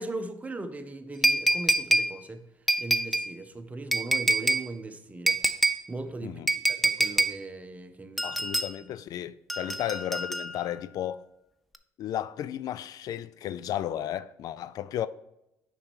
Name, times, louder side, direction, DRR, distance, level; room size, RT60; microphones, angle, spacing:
voice 1, 0.0-2.4 2.8-5.4 5.9-6.4 6.7-8.3 8.8-9.0 9.6-9.8, right 2 dB, 20° right, 1.0 m, -39 dB
sound 1, 1.2-2.1 2.7-3.3 3.9-4.6 5.3-5.8 6.5-7.3 8.2-8.7 9.5-10.7 11.7-11.8, right 1 dB, ahead, 0.6 m, -25 dB
voice 2, 8.2-11.2 12.0-15.1, left 11 dB, 60° left, 0.4 m, -34 dB
7.1 x 5.5 x 4.6 m
supercardioid pair, 65°, 7 cm